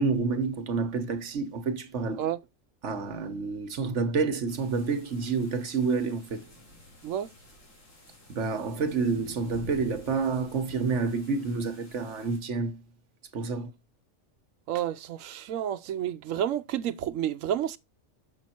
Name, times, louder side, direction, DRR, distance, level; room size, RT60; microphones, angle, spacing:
voice 1, 0.0-2.3 2.8-6.4 8.3-12.8 13.3-13.7, right 4 dB, 70° right, 1.4 m, -29 dB
sound 1, 4.5-12.4, left 1 dB, 80° left, 3.2 m, -50 dB
voice 2, 14.7-17.8, right 10 dB, 85° right, 1.0 m, -30 dB
6.9 x 5.8 x 4.3 m
omnidirectional pair, 1.3 m